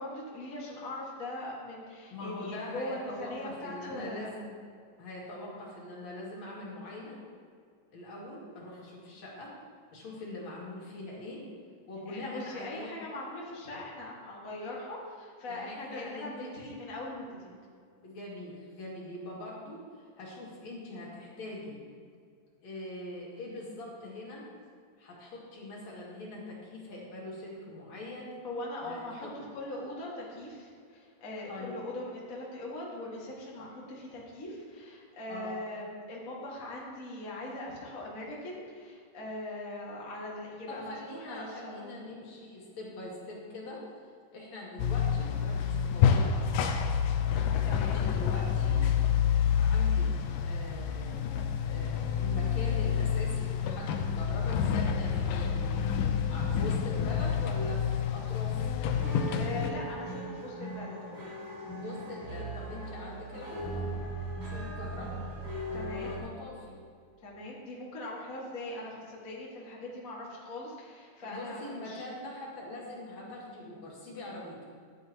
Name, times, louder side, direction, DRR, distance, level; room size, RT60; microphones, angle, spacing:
voice 1, 0.0-4.3 12.1-17.5 28.4-42.0 47.6-48.0 59.1-61.3 65.7-66.1 67.2-72.0, left 1 dB, 30° left, -5 dB, 1.8 m, -41 dB
voice 2, 2.1-4.6 5.0-7.2 7.9-9.6 9.9-11.5 11.9-12.9 15.5-16.8 18.0-21.8 22.6-24.5 25.0-28.4 28.8-29.3 31.5-31.8 33.6-33.7 35.3-35.6 40.7-43.8 44.3-46.7 47.8-48.9 49.6-58.7 61.8-63.9 64.4-65.2 65.7-66.8 71.2-74.6, left 2 dB, 60° left, -5 dB, 3.3 m, -43 dB
sound 1, 44.8-59.7, left 7 dB, 80° left, 2.3 m, -28 dB
sound 2, 58.9-66.2, right 1 dB, 80° right, 4.7 m, -38 dB
14.5 x 10.0 x 2.9 m, 2.3 s
omnidirectional pair, 3.8 m